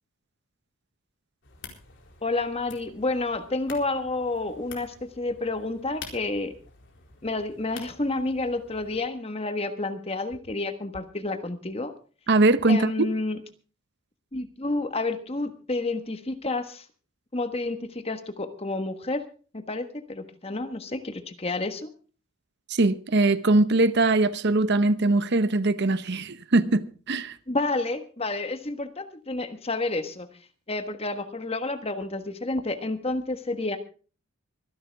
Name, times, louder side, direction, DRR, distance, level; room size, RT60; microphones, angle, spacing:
sound 1, 1.4-9.0, left 5 dB, 55° left, 4.3 m, -48 dB
voice 1, 2.2-6.5 7.2-11.9 12.7-13.4 14.3-16.8 17.3-19.2 19.5-21.9 27.5-30.3 30.7-33.8, left 2 dB, 25° left, 1.4 m, -30 dB
voice 2, 12.3-12.9 22.7-27.4, right 2 dB, 50° right, 0.8 m, -21 dB
25.0 x 11.0 x 3.5 m
head